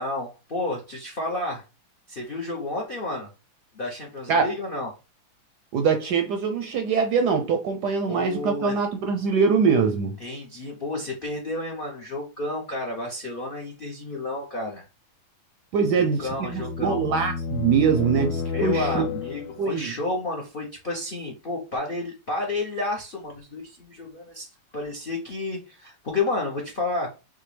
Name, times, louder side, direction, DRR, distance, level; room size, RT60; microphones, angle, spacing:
voice 1, 0.0-1.6 2.1-3.3 3.7-4.9 8.1-8.8 10.2-14.8 15.9-17.2 18.5-24.5 24.7-27.1, left 2 dB, 55° left, 0.5 m, -31 dB
voice 2, 5.7-10.2 15.7-19.1 19.6-19.9, right 5 dB, 70° right, 1.0 m, -23 dB
sound 1, 15.8-19.8, left 5 dB, 80° left, 1.3 m, -31 dB
5.9 x 2.3 x 3.2 m
omnidirectional pair, 2.2 m